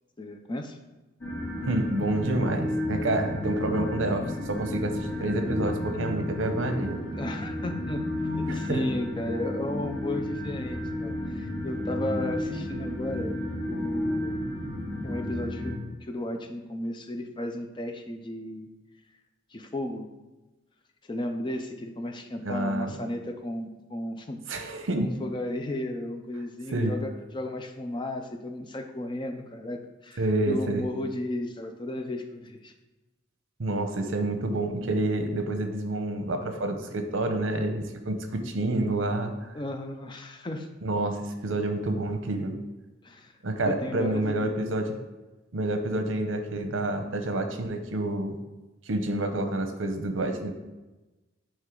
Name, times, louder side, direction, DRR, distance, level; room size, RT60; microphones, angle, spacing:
voice 1, 0.2-0.8 7.1-8.0 8.3-13.4 13.7-14.7 15.0-15.7 16.0-18.7 19.5-20.1 21.1-24.7 25.0-32.7 39.5-40.7 43.0-43.3 43.6-44.6, left 1 dB, 25° left, 5 dB, 0.5 m, -34 dB
sound 1, 1.2-15.8, left 1 dB, 75° left, 2.0 m, -32 dB
voice 2, 1.7-7.0 8.5-8.8 22.4-22.9 24.5-25.1 26.7-27.0 30.2-30.8 33.6-39.6 40.8-42.5 43.4-44.9 45.5-48.4 48.9-50.5, right 2 dB, 75° right, 6 dB, 0.8 m, -28 dB
9.0 x 3.2 x 3.7 m, 1.1 s
head